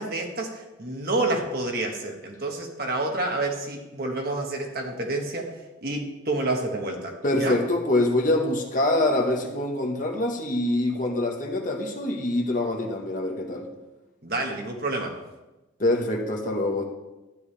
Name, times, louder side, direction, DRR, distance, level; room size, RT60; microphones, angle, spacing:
voice 1, 0.0-7.6 14.2-15.2, right 2 dB, 50° right, 1 dB, 1.5 m, -29 dB
voice 2, 7.2-13.7 15.8-16.9, left 1 dB, 40° left, 2 dB, 1.3 m, -25 dB
12.0 x 10.5 x 3.4 m, 1.1 s
head